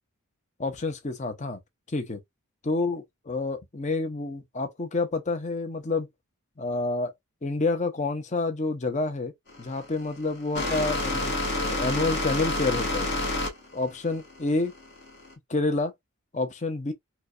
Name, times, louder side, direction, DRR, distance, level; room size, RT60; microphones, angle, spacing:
voice 1, 0.6-1.6 1.9-2.2 2.6-6.1 6.6-7.1 7.4-9.3 9.6-13.1 13.7-14.7 15.5-15.9 16.3-16.9, left 3 dB, 30° left, 0.7 m, -28 dB
sound 1, 9.5-15.3, left 2 dB, 50° left, 1.3 m, -29 dB
4.5 x 2.2 x 2.5 m
head